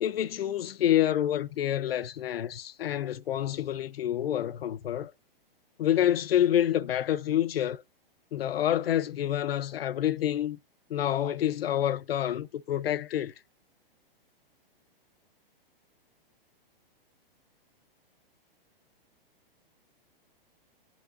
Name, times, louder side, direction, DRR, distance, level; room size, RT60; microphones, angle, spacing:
voice 1, 0.0-5.1 5.8-7.8 8.3-10.6 10.9-13.3, left 11 dB, 80° left, 0.7 m, -28 dB
9.0 x 8.5 x 2.6 m
hypercardioid pair, 140°, 29 cm